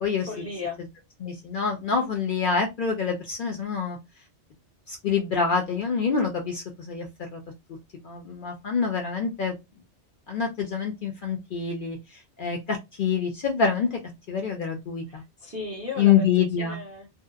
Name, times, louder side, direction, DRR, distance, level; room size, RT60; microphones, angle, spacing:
voice 1, 0.2-0.8 15.1-16.3 16.6-17.1, left 3 dB, 20° right, 0 dB, 0.5 m, -35 dB
voice 2, 1.2-4.0 4.9-7.4 8.0-9.5 10.3-14.0 14.3-15.2 16.0-16.8, left 6 dB, 60° left, 2 dB, 0.6 m, -26 dB
2.7 x 2.0 x 2.3 m, 0.21 s
omnidirectional pair, 1.2 m